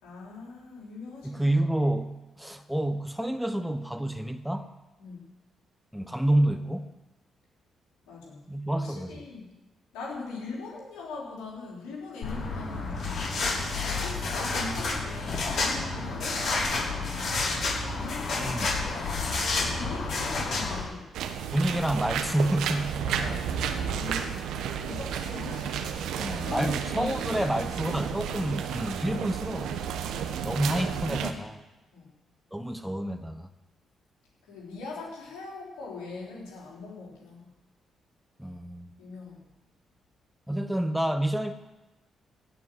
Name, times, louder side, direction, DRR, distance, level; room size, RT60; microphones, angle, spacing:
voice 1, 0.0-1.5 5.0-5.3 8.1-8.5 8.8-9.5 9.9-13.3 13.8-16.6 18.0-21.1 23.0-24.4 24.8-27.7 30.1-30.5 31.9-32.1 34.4-37.5 39.0-39.5, left 4 dB, 75° left, -3 dB, 4.2 m, -41 dB
voice 2, 1.2-4.7 5.9-6.9 8.5-9.1 18.3-18.7 21.5-23.0 26.2-29.8 30.4-31.6 32.5-33.5 38.4-38.9 40.5-41.5, right 1 dB, 5° right, 9 dB, 1.2 m, -28 dB
sound 1, 12.2-20.8, left 3 dB, 55° left, 5.9 m, -30 dB
sound 2, 21.1-31.3, right 8 dB, 70° right, 1.1 m, -32 dB
16.5 x 6.0 x 9.3 m, 1.0 s
hypercardioid pair, 40°, 0 cm